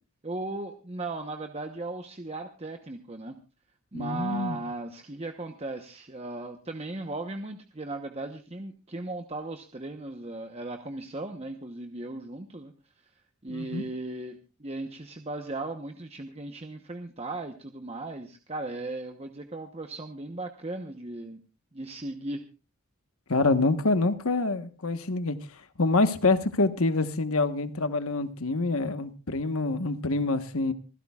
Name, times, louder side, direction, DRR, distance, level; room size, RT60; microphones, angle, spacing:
voice 1, 0.2-3.4 3.9-12.7 13.0-13.1 13.4-21.4 21.7-22.5, right 2 dB, 30° right, 1.0 m, -37 dB
voice 2, 3.9-4.6 13.5-13.8 23.3-25.4 25.8-30.7, left 3 dB, 70° left, 1.3 m, -26 dB
26.0 x 16.0 x 2.4 m
head